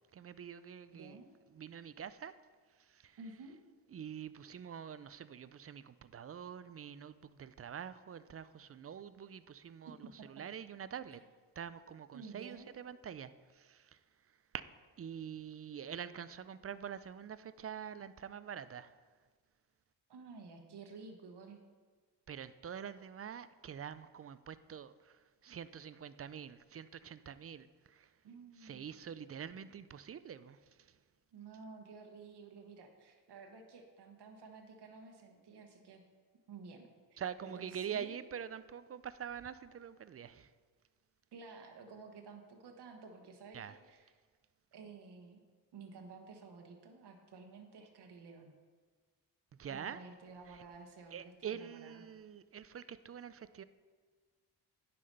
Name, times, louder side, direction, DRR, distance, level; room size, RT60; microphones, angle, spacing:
voice 1, 0.1-1.2 1.5-2.4 2.8-3.2 3.9-11.2 11.6-14.0 14.5-14.6 15.0-19.0 22.3-28.1 28.6-31.0 37.2-40.5 43.5-43.8 49.6-50.0 50.5-50.6 51.1-53.6, right 8 dB, 35° right, 15 dB, 0.4 m, -46 dB
voice 2, 0.9-1.3 3.2-3.6 10.0-10.3 11.1-11.2 12.1-12.7 20.1-21.6 28.2-28.9 31.3-36.0 36.5-38.2 41.3-44.1 44.7-45.4 45.7-48.5 49.7-52.0, right 4 dB, 75° right, 3 dB, 1.3 m, -52 dB
9.5 x 5.9 x 5.4 m, 1.5 s
cardioid pair, 80°, 40 cm